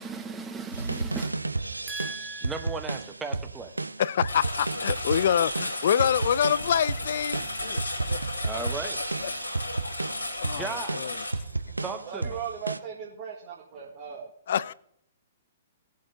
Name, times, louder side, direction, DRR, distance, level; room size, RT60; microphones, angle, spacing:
voice 1, 0.0-1.4 1.9-3.7 8.4-9.0 10.5-11.4 11.8-12.3, right 4 dB, 10° right, 1.0 m, -36 dB
sound 1, 0.7-12.8, right 3 dB, 80° right, 0.4 m, -33 dB
voice 2, 4.0-7.8 8.1-8.4 9.2-9.3 10.4-10.7 11.0-11.1 14.5-14.7, left 9 dB, 50° left, 0.3 m, -26 dB
Engine, 4.3-11.3, left 1 dB, 80° left, 2.6 m, -34 dB
voice 3, 12.0-14.3, right 8 dB, 35° right, 1.8 m, -37 dB
19.0 x 7.5 x 2.7 m
figure-of-eight pair, 115°, 0 cm